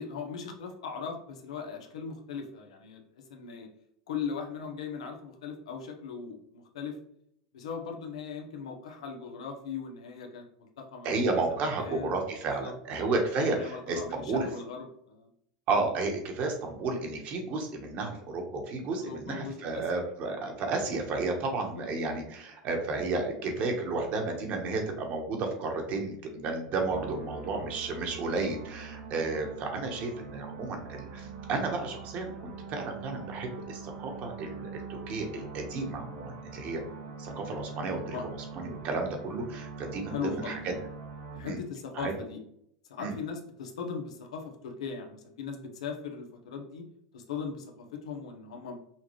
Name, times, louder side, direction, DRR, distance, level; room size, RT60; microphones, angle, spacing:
voice 1, 0.0-3.7 4.1-7.0 7.5-12.2 12.6-12.7 13.0-13.2 13.5-15.3 19.0-19.9 21.6-21.9 29.7-30.0 37.3-37.4 38.0-38.2 40.1-40.6 41.3-42.4 42.9-46.8 47.1-48.8, left 5 dB, 90° left, 2 dB, 1.0 m, -39 dB
voice 2, 11.0-14.5 15.7-36.8 37.2-40.6 41.4-41.6 41.9-42.1 43.0-43.1, right 3 dB, 45° right, 3 dB, 1.3 m, -32 dB
sound 1, 26.9-41.4, right 5 dB, 70° right, 1.4 m, -43 dB
5.7 x 2.4 x 3.2 m, 0.72 s
supercardioid pair, 120°, 3 cm